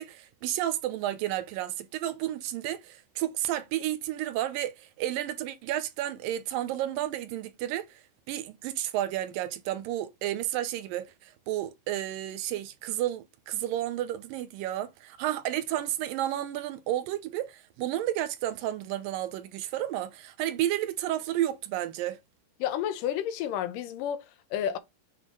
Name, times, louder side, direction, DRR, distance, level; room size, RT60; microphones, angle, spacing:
voice 1, 0.0-8.0 8.3-22.2, right 13 dB, 85° right, 2.4 m, -32 dB
voice 2, 22.6-24.8, left 10 dB, 80° left, 2.4 m, -31 dB
7.5 x 3.7 x 3.7 m
omnidirectional pair, 3.9 m